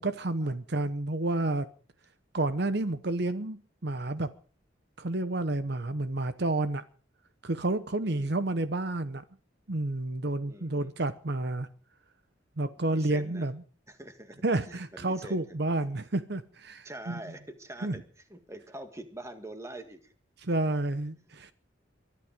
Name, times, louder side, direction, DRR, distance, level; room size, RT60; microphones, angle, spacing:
voice 1, 0.0-1.7 2.3-4.3 5.0-6.8 7.4-9.2 9.7-11.7 12.6-13.6 14.4-17.2 17.8-17.9 20.4-21.5, right 2 dB, 55° right, 12 dB, 0.9 m, -30 dB
voice 2, 8.0-8.4 10.4-11.1 12.8-13.5 13.9-15.6 16.8-18.0 18.3-20.1 21.3-21.4, right 1 dB, 15° right, 8 dB, 1.9 m, -45 dB
23.0 x 12.0 x 5.1 m, 0.40 s
head